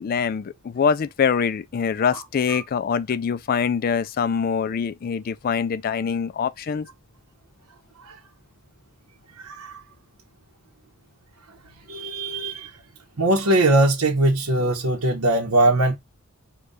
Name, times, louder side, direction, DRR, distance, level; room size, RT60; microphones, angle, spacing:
voice 1, 0.0-6.9, left 6 dB, 40° left, 0.3 m, -24 dB
voice 2, 9.4-9.8 11.9-12.7 13.2-16.0, right 2 dB, 90° right, 1.0 m, -21 dB
5.0 x 2.3 x 3.9 m
head